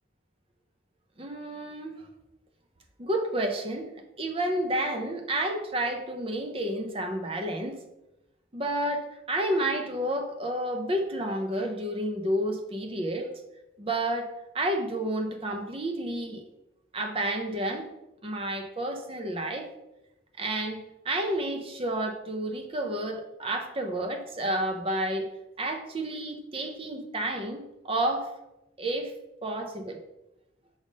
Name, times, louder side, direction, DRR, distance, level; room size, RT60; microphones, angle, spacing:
voice 1, 1.2-2.1 3.0-3.9 4.2-7.8 8.5-13.3 13.8-14.3 14.5-16.4 16.9-17.9 18.2-19.7 20.4-25.3 25.6-28.3 28.8-29.1 29.4-30.0, right 1 dB, 30° right, 4 dB, 0.6 m, -30 dB
6.4 x 3.5 x 5.2 m, 0.92 s
head